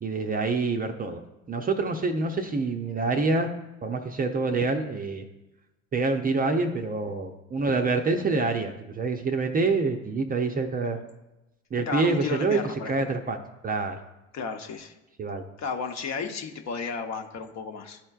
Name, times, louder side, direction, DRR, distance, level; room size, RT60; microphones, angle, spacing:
voice 1, 0.0-1.2 1.5-3.5 3.8-5.2 5.9-11.0 11.7-13.4 13.6-14.0 15.2-15.4, right 3 dB, 20° right, 4 dB, 0.6 m, -26 dB
voice 2, 11.9-12.9 14.3-14.9 15.6-18.0, left 5 dB, 40° left, 5 dB, 0.9 m, -33 dB
12.0 x 4.3 x 2.4 m, 0.99 s
hypercardioid pair, 70°, 41 cm